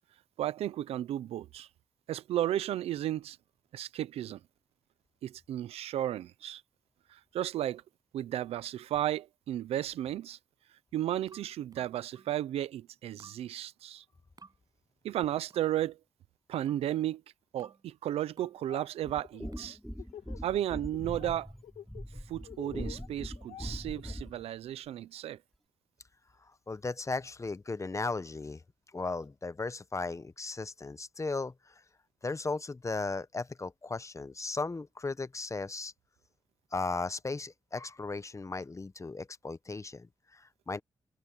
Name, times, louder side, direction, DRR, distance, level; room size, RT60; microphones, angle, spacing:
voice 1, 0.4-1.7 2.1-3.4 3.7-4.4 5.2-6.6 7.1-7.8 8.1-10.4 10.9-14.0 15.0-16.0 16.5-17.2 17.5-19.8 20.4-21.5 22.3-25.4, right 12 dB, 85° right, 0.8 m, -34 dB
sound 1, 11.3-12.4 13.2-13.5 14.4-14.6 15.5-15.8 16.7-16.9 17.6-17.9 18.4-18.6 19.5-19.8, right 4 dB, 40° right, 7.3 m, -57 dB
Laughter, 18.4-18.9 19.2-20.6 20.9-21.3 21.6-24.5, left 10 dB, 90° left, 2.4 m, -49 dB
sound 2, 19.0-24.4, equal, ahead, 6.6 m, -42 dB
voice 2, 26.4-28.6 28.9-31.8 32.2-35.9 36.7-40.8, left 3 dB, 30° left, 1.1 m, -36 dB
supercardioid pair, 50°, 10 cm